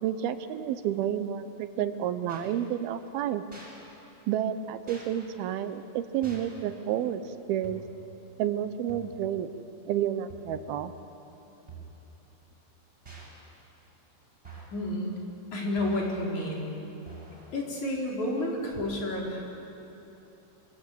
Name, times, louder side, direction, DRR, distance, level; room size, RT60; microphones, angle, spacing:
voice 1, 0.0-3.4 4.3-7.2 7.5-7.8 8.4-9.5 9.9-10.9, right 10 dB, 75° right, 11 dB, 2.6 m, -30 dB
sound 1, 2.3-2.5 3.5-3.7 4.9-5.1 6.2-6.6 7.6-8.1 8.9-9.3 10.3-10.7 11.7-12.1 13.1-13.4 14.4-14.8 15.8-16.3 17.1-17.6, right 2 dB, 15° right, 7.2 m, -47 dB
voice 2, 14.7-15.1 15.5-16.7 17.5-19.4, left 1 dB, 45° left, -2 dB, 5.2 m, -30 dB
27.0 x 24.5 x 8.5 m, 3.0 s
omnidirectional pair, 4.8 m